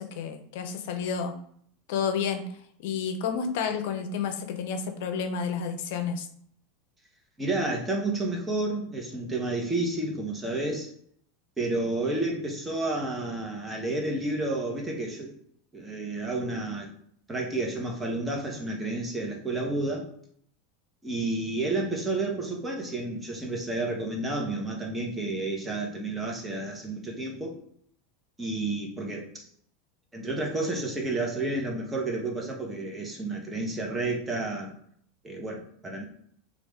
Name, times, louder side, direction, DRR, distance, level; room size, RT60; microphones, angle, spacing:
voice 1, 0.0-1.4 1.9-2.5 2.8-6.3, left 6 dB, 70° left, 7 dB, 0.5 m, -30 dB
voice 2, 7.4-10.9 11.6-15.3 15.7-16.9 17.3-20.0 21.0-27.5 28.4-29.5 30.1-34.7 35.2-36.0, right 2 dB, 15° right, 0 dB, 0.9 m, -30 dB
3.0 x 2.4 x 3.5 m, 0.64 s
supercardioid pair, 115°, 0 cm